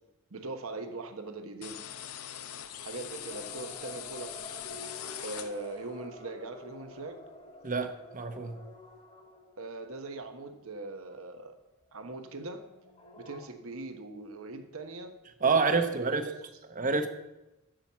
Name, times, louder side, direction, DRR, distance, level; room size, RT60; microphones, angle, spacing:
voice 1, 0.3-1.8 2.8-4.6 5.2-7.2 9.6-11.5 11.9-12.6 13.2-15.1 15.4-16.4, right 3 dB, 65° right, 7 dB, 1.1 m, -41 dB
sound 1, 1.6-5.9, left 10 dB, 85° left, 0.7 m, -42 dB
sound 2, 3.3-10.2 10.8-10.9 11.1-11.2 12.0-13.5, left 1 dB, 30° left, 1.5 m, -50 dB
voice 2, 7.6-8.6 15.4-16.3 16.8-17.1, right 4 dB, 35° right, 8 dB, 0.9 m, -27 dB
8.7 x 7.1 x 7.4 m, 0.99 s
head